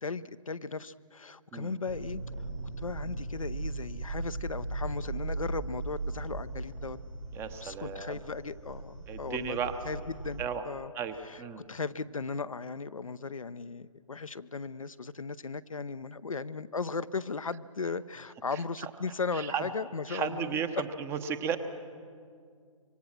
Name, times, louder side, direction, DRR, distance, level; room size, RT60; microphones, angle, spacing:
voice 1, 0.0-2.2 2.8-7.0 7.6-9.6 9.8-10.9 11.3-11.4 11.7-20.6, left 4 dB, 75° left, 13 dB, 0.7 m, -37 dB
sound 1, 1.8-10.4, right 3 dB, 80° right, 3.6 m, -38 dB
voice 2, 7.3-8.2 9.1-9.8 10.4-10.6 10.9-11.6 18.5-18.9 19.3-19.7 20.1-21.6, right 7 dB, 15° right, 10 dB, 0.9 m, -34 dB
26.0 x 24.0 x 6.2 m, 2.2 s
figure-of-eight pair, 130°, 18 cm